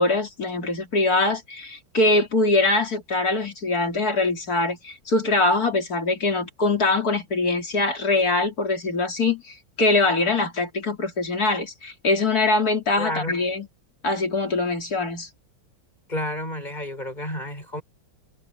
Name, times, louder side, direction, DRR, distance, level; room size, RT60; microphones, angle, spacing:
voice 1, 0.0-13.7 14.0-15.3, left 2 dB, 55° left, 3.8 m, -23 dB
voice 2, 13.0-13.4 16.1-17.8, left 1 dB, 25° left, 7.2 m, -30 dB
omnidirectional pair, 1.9 m